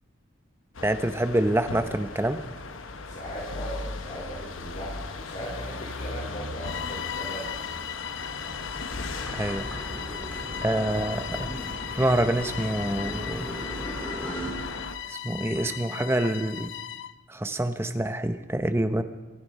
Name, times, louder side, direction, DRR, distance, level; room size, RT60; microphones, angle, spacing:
sound 1, 0.7-14.9, left 3 dB, 85° left, 1.1 m, -37 dB
voice 1, 0.8-2.4 9.3-9.7 10.6-11.5 11.9-13.5 15.1-16.7 17.3-19.0, right 1 dB, 10° right, 9 dB, 0.8 m, -26 dB
voice 2, 2.9-7.7, equal, 40° left, -4 dB, 3.7 m, -38 dB
Bowed string instrument, 6.6-17.2, left 10 dB, 65° left, 0.5 m, -38 dB
sound 2, 9.1-14.5, right 1 dB, 10° left, 3.2 m, -38 dB
24.5 x 11.0 x 5.4 m, 1.2 s
head